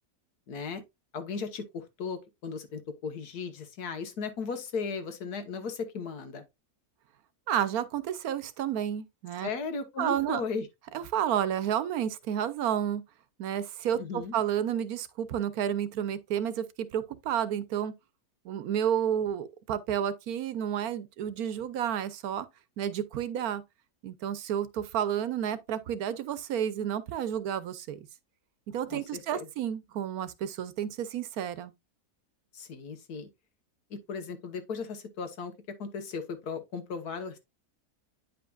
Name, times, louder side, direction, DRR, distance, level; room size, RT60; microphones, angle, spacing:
voice 1, 0.5-0.8 1.1-6.4 9.4-10.7 13.9-14.3 28.9-29.5 32.5-33.3 33.9-35.5 35.8-37.4, left 5 dB, 80° left, 1.7 m, -36 dB
voice 2, 7.5-9.5 10.0-10.4 10.9-13.0 13.4-17.9 18.4-22.5 22.8-23.6 24.0-28.0 28.7-31.7, right 9 dB, 75° right, 1.2 m, -31 dB
9.4 x 5.2 x 2.4 m
omnidirectional pair, 1.6 m